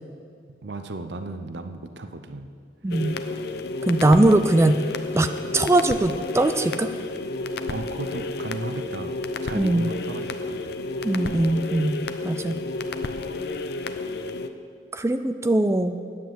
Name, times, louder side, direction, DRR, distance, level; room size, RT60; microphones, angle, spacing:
voice 1, 0.6-2.5 7.7-10.8, right 2 dB, 70° right, 8 dB, 0.7 m, -35 dB
voice 2, 2.8-3.2 3.9-4.8 5.1-5.3 5.5-6.9 9.5-9.9 11.0-12.0 12.2-12.6 14.9-16.0, right 1 dB, 15° right, 9 dB, 0.4 m, -20 dB
sound 1, 2.9-14.5, left 2 dB, 60° left, 0.6 m, -31 dB
10.5 x 9.1 x 7.7 m, 2.1 s
head